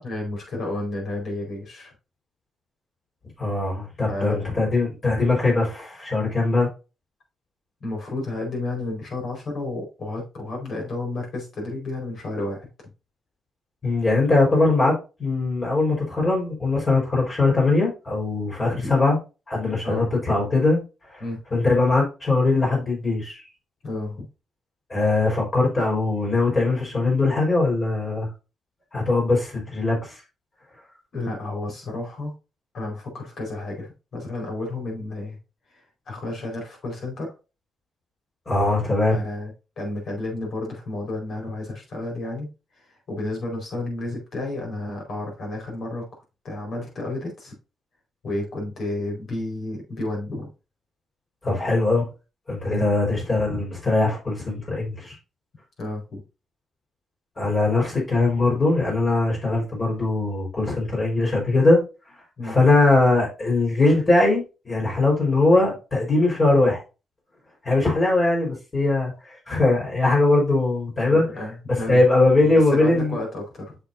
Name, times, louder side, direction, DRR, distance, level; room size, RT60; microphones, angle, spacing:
voice 1, 0.0-1.9 4.1-4.6 7.8-12.7 18.6-18.9 19.8-20.1 21.2-21.4 23.8-24.3 31.1-32.3 32.7-35.4 35.7-37.3 39.1-42.5 42.7-46.0 46.4-47.5 48.2-50.5 52.7-52.8 55.8-56.2 62.4-62.6 71.1-72.0 72.5-73.8, left 2 dB, 65° left, 0 dB, 4.5 m, -31 dB
voice 2, 3.4-6.7 13.8-14.9 15.2-19.2 19.5-20.8 21.1-21.2 21.5-23.4 24.9-28.3 28.9-30.2 38.5-39.2 51.4-52.1 52.5-55.2 57.4-61.8 62.4-66.8 67.6-71.2 71.7-73.2, left 2 dB, 40° left, -3 dB, 4.5 m, -21 dB
8.1 x 6.1 x 2.6 m, 0.30 s
cardioid pair, 70°, 0 cm